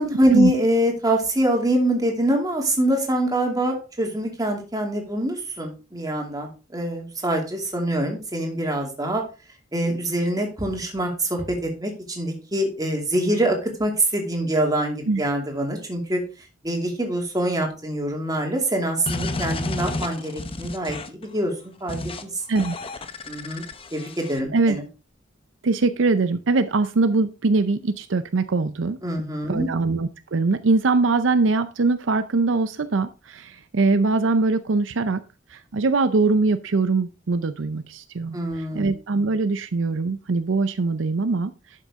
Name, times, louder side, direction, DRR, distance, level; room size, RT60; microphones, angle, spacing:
voice 1, 0.0-9.2 9.7-16.2 16.6-22.4 23.3-23.6 23.9-24.8 29.0-29.7 38.3-38.9, right 1 dB, 20° right, 1 dB, 2.6 m, -24 dB
sound 1, 19.1-21.2 21.9-22.2 22.6-24.4, left 2 dB, 30° left, 0.9 m, -31 dB
voice 2, 25.6-29.0 29.5-35.2 35.5-38.4 38.8-41.5, right 3 dB, 75° right, 11 dB, 0.6 m, -22 dB
11.5 x 6.5 x 3.6 m, 0.32 s
head